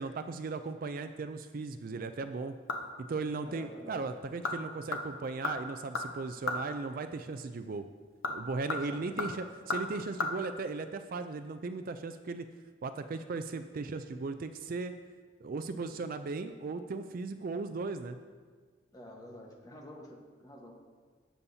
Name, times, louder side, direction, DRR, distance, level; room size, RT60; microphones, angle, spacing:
voice 1, 0.0-2.5 3.1-7.9 8.3-12.5 12.8-14.9 15.4-18.2, right 3 dB, 45° right, 9 dB, 0.4 m, -37 dB
sound 1, 2.2-3.1 3.4-3.5 4.2-4.6 4.9-6.7 8.0-10.3 10.6-10.7, left 3 dB, 90° left, 0.9 m, -36 dB
voice 2, 3.4-4.0 8.8-9.3 18.9-20.8, left 1 dB, 20° left, 0 dB, 1.2 m, -49 dB
17.5 x 7.0 x 2.7 m, 1.6 s
head